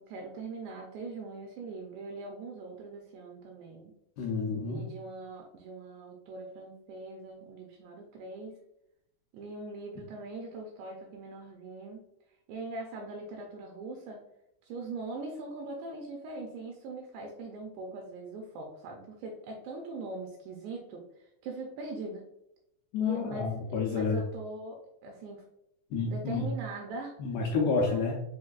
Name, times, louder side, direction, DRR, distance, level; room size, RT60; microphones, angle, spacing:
voice 1, 0.0-3.9 4.6-8.6 9.3-12.0 12.5-14.3 14.6-22.3 23.0-23.6 23.9-25.4 26.1-27.2 27.9-28.0, right 3 dB, 85° right, 1 dB, 2.4 m, -41 dB
voice 2, 4.2-4.8 22.9-24.2 25.9-26.5 27.2-28.2, left 4 dB, 80° left, -3 dB, 2.3 m, -29 dB
7.2 x 2.6 x 2.3 m, 0.81 s
omnidirectional pair, 5.3 m